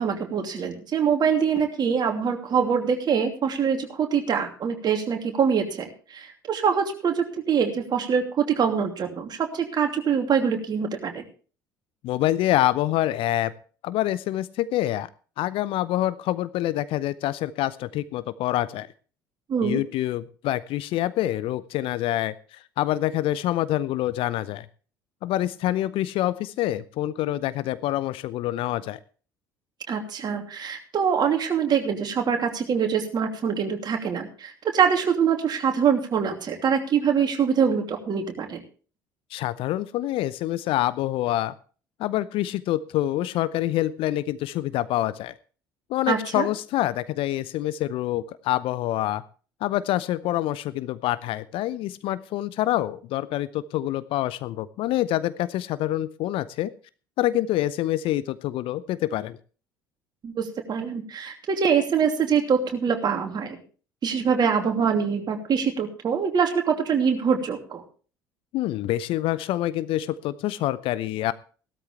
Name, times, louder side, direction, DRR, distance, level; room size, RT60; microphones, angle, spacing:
voice 1, 0.0-11.2 19.5-19.8 29.9-38.6 46.1-46.5 60.2-63.6 64.0-67.8, right 7 dB, 40° right, 3 dB, 2.9 m, -24 dB
voice 2, 12.0-13.5 13.8-15.1 15.4-18.9 19.6-24.7 25.2-29.0 39.3-41.5 42.0-45.3 45.9-49.2 49.6-56.7 57.2-59.4 68.5-71.3, left 14 dB, 55° left, 17 dB, 0.6 m, -26 dB
16.5 x 13.0 x 3.3 m, 0.39 s
figure-of-eight pair, 60°, 11 cm